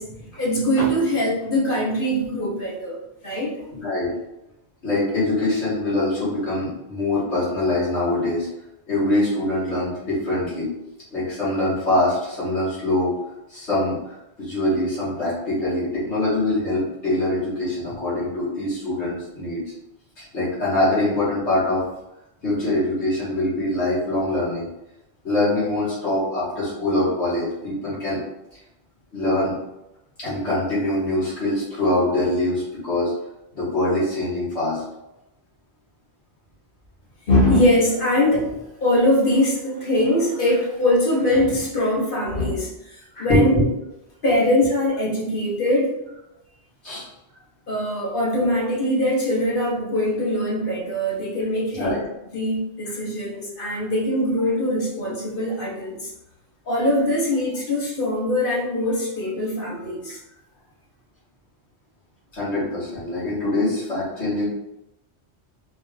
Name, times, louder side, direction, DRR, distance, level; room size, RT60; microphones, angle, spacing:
voice 1, 0.0-3.0 3.2-3.7 37.3-43.6 44.2-46.0 47.7-52.0 52.3-56.1 56.6-60.2, left 1 dB, 55° left, -4 dB, 1.1 m, -22 dB
voice 2, 3.8-4.1 4.8-8.5 8.9-10.7 11.1-13.1 13.5-19.6 20.2-21.8 22.4-24.7 25.2-28.2 29.1-29.5 30.2-33.1 33.5-34.8 43.3-43.6 46.8-47.0 51.8-52.0 62.3-64.5, left 1 dB, 90° left, -10 dB, 2.0 m, -23 dB
4.3 x 2.5 x 3.1 m, 0.91 s
omnidirectional pair, 1.1 m